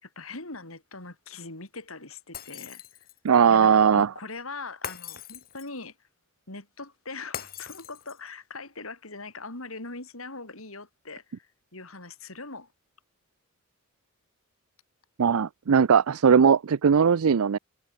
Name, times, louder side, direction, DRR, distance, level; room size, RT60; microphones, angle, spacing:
voice 1, 0.0-3.1 3.5-6.1 6.5-12.7, left 3 dB, 75° left, 5.6 m, -41 dB
Shatter, 2.3-3.3 4.8-5.8 7.3-8.3, left 9 dB, 45° left, 2.1 m, -40 dB
voice 2, 3.2-4.1 15.2-17.6, right 6 dB, 85° right, 0.5 m, -19 dB
head